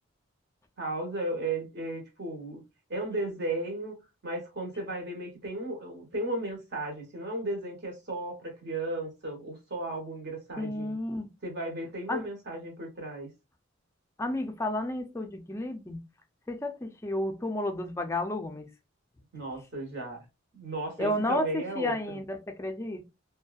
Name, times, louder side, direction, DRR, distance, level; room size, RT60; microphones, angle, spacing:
voice 1, 0.8-2.6 2.9-4.0 4.2-11.0 11.4-13.3 19.3-20.2 20.5-22.0, right 2 dB, 50° right, 1.0 m, -35 dB
voice 2, 10.6-11.3 12.1-12.2 14.2-16.0 16.5-18.7 21.0-23.0, left 1 dB, 15° left, 0.3 m, -32 dB
2.6 x 2.2 x 2.3 m
head